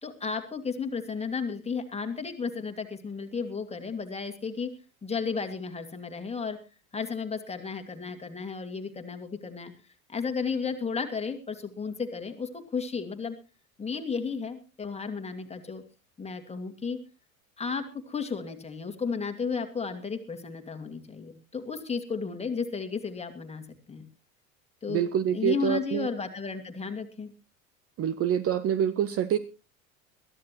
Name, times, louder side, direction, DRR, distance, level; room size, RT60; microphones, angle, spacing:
voice 1, 0.0-4.7 5.0-6.6 6.9-9.7 10.1-13.4 13.8-15.8 16.2-17.0 17.6-24.1 24.8-25.0 25.3-27.3, left 5 dB, 15° left, 6 dB, 2.2 m, -33 dB
voice 2, 24.9-26.1 28.0-29.4, right 9 dB, 35° right, 15 dB, 0.9 m, -26 dB
22.0 x 13.5 x 3.0 m, 0.31 s
figure-of-eight pair, 75°, 42 cm